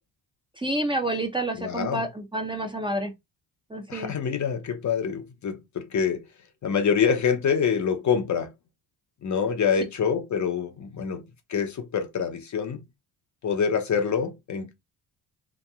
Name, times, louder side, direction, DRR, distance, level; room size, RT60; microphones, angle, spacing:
voice 1, 0.6-3.1 3.7-4.1, right 1 dB, 10° right, 0.6 m, -29 dB
voice 2, 1.6-2.1 3.9-6.2 6.6-8.5 9.2-11.2 11.5-12.8 13.4-14.7, left 6 dB, 40° left, 0.6 m, -26 dB
2.9 x 2.5 x 2.3 m
supercardioid pair, 70°, 45 cm